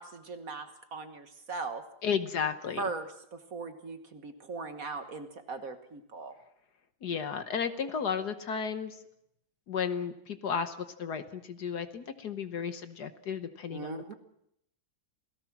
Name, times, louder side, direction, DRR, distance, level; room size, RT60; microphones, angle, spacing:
voice 1, 0.0-1.9 2.8-6.3 13.7-14.1, right 3 dB, 45° right, 8 dB, 1.6 m, -39 dB
voice 2, 2.0-2.8 7.0-8.9 9.7-10.7 11.0-14.1, left 6 dB, 55° left, 10 dB, 1.5 m, -33 dB
28.0 x 18.0 x 6.0 m, 0.75 s
omnidirectional pair, 2.2 m